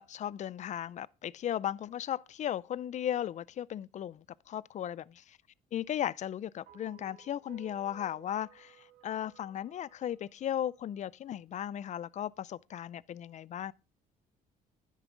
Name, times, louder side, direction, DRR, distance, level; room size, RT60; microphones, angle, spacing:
voice 1, 0.0-5.4 5.7-8.8 9.0-13.7, left 10 dB, 45° left, 0.5 m, -36 dB
sound 1, 6.7-11.0, right 11 dB, 70° right, 2.3 m, -57 dB
10.5 x 9.4 x 3.8 m
cardioid pair, 110°, 17 cm